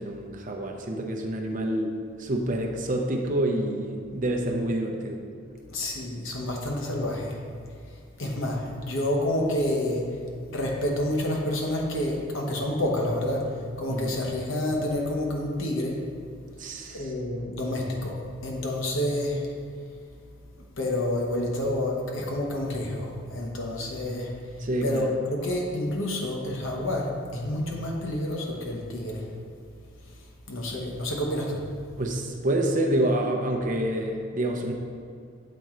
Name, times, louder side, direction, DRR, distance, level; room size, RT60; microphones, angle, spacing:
voice 1, 0.0-5.2 13.9-14.2 16.6-17.1 24.6-25.1 32.0-34.7, right 1 dB, 40° right, 2 dB, 0.6 m, -28 dB
voice 2, 5.7-7.4 8.2-10.1 10.5-13.5 13.8-16.0 16.9-18.2 18.4-19.5 20.8-24.3 24.8-29.2 30.5-31.6, left 1 dB, 70° left, 0 dB, 1.0 m, -28 dB
7.6 x 4.4 x 3.7 m, 2.3 s
head